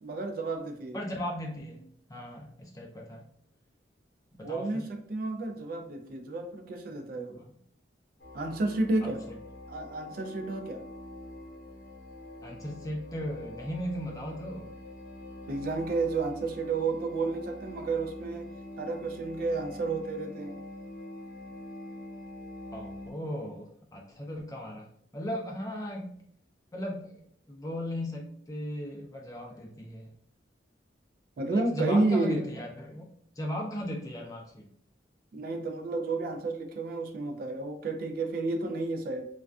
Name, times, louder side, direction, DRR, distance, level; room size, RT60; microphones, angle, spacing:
voice 1, 0.0-1.0 4.4-7.4 8.3-9.2 9.7-10.8 15.5-18.5 18.8-20.6 31.4-32.5 35.3-39.3, right 3 dB, 50° right, 5 dB, 0.3 m, -31 dB
voice 2, 0.9-3.3 4.3-4.8 7.3-7.5 9.0-9.4 12.4-14.7 22.7-26.1 26.7-27.1 27.5-30.1 31.5-33.0 33.4-34.7, equal, 20° left, 0 dB, 0.4 m, -37 dB
sound 1, 8.2-23.1, left 1 dB, 50° left, 0.7 m, -45 dB
2.3 x 2.2 x 2.4 m, 0.62 s
head